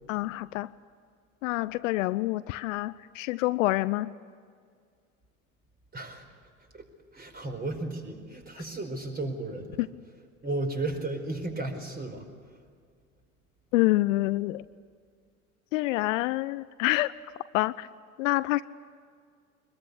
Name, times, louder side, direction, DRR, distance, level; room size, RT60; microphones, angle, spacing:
voice 1, 0.1-0.7 1.4-4.1 9.8-9.9 13.7-14.6 15.7-17.1 17.5-17.9 18.2-18.6, left 19 dB, 60° left, 16 dB, 0.7 m, -27 dB
voice 2, 5.9-6.2 6.7-6.9 7.1-9.8 10.4-12.2, right 2 dB, 20° right, 4 dB, 4.8 m, -34 dB
23.5 x 21.5 x 8.3 m, 2.1 s
figure-of-eight pair, 75°, 44 cm